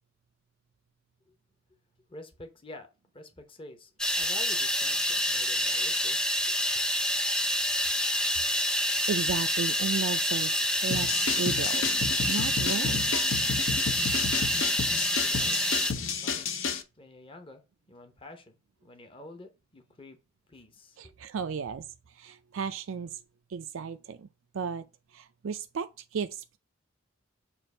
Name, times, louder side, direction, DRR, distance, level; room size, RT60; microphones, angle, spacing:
voice 1, 2.1-2.9 3.1-3.9 4.2-6.2 15.1-15.6 15.9-16.5 17.0-17.6 17.9-18.5 18.8-20.2 20.5-21.1, left 2 dB, 25° left, 0.8 m, -48 dB
sound 1, 4.0-15.9, equal, 5° left, 0.5 m, -27 dB
voice 2, 9.1-11.9 12.3-13.2 21.0-23.2 23.5-24.3 24.5-24.8 25.1-26.6, right 6 dB, 80° right, 0.4 m, -34 dB
sound 2, 10.9-16.8, left 5 dB, 70° left, 0.8 m, -31 dB
7.1 x 2.5 x 5.3 m
head